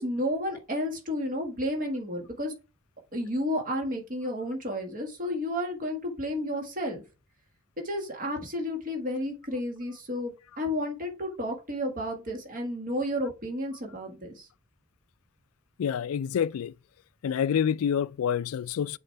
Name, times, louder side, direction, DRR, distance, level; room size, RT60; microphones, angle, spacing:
voice 1, 0.0-2.5 3.1-7.0 7.8-14.5, equal, 40° right, 1.8 m, -32 dB
voice 2, 15.8-16.7 17.2-19.0, left 8 dB, 80° left, 0.3 m, -27 dB
7.9 x 4.2 x 3.3 m
head